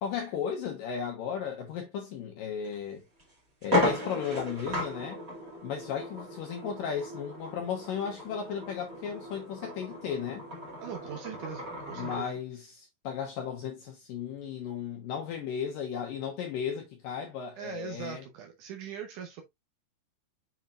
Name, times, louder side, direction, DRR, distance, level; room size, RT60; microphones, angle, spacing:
voice 1, 0.0-3.0 3.6-5.2 5.6-10.4 12.0-18.2, left 7 dB, 70° left, 2.3 m, -35 dB
sound 1, 2.6-2.8 3.2-3.3 3.6-12.3, left 1 dB, 25° right, 2.3 m, -35 dB
voice 2, 10.8-12.4 17.6-19.4, right 8 dB, 75° right, 1.8 m, -41 dB
7.3 x 5.7 x 2.5 m
omnidirectional pair, 4.9 m